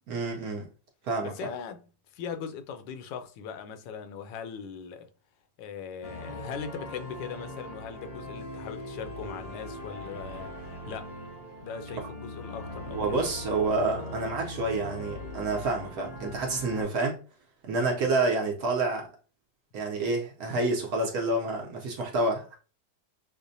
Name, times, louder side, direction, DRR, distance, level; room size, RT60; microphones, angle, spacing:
voice 1, 0.1-0.7 1.0-1.3 12.9-17.2 17.6-19.1 19.7-22.6, right 2 dB, 65° right, 1.1 m, -28 dB
voice 2, 1.2-1.8 2.1-5.1 5.6-11.1 11.6-13.2, left 6 dB, 80° left, 1.3 m, -40 dB
sound 1, 6.0-16.8, left 1 dB, 55° left, 0.4 m, -40 dB
5.7 x 2.1 x 2.6 m
omnidirectional pair, 2.0 m